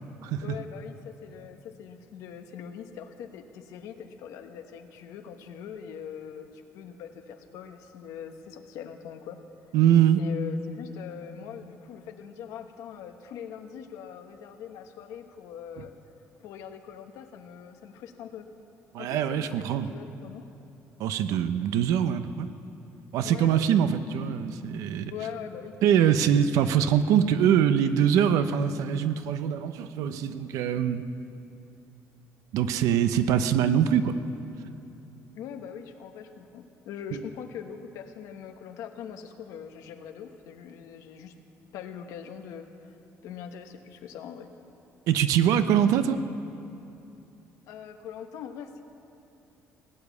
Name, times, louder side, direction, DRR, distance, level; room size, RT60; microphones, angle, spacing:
voice 1, 0.4-9.4 10.2-15.9 16.4-18.5 19.0-20.5 23.2-23.9 25.1-25.8 35.3-41.4 41.7-42.9 43.2-44.5 47.7-48.8, left 8 dB, 85° left, 6 dB, 1.1 m, -42 dB
voice 2, 9.7-10.2 15.8-15.9 18.9-19.9 21.0-22.5 23.1-25.1 25.8-31.0 32.5-34.2 37.1-37.2 45.1-46.2, right 9 dB, 85° right, 11 dB, 0.7 m, -23 dB
18.5 x 9.1 x 8.3 m, 2.8 s
cardioid pair, 155°, 6 cm